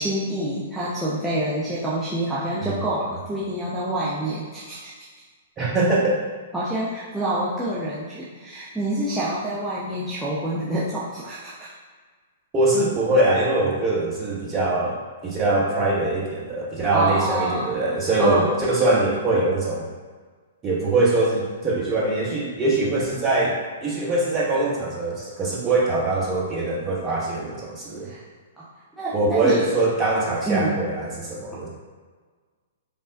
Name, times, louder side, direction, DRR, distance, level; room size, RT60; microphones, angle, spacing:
voice 1, 0.0-4.9 6.5-11.7 16.9-17.7 18.2-18.6 28.0-28.2 28.6-28.7 28.9-29.7 30.5-30.8, right 1 dB, 5° right, -10 dB, 0.6 m, -27 dB
voice 2, 5.6-6.2 12.5-19.9 20.6-28.1 29.1-31.7, right 2 dB, 20° right, -4 dB, 0.9 m, -23 dB
5.2 x 2.1 x 2.6 m, 1.5 s
figure-of-eight pair, 110°, 0 cm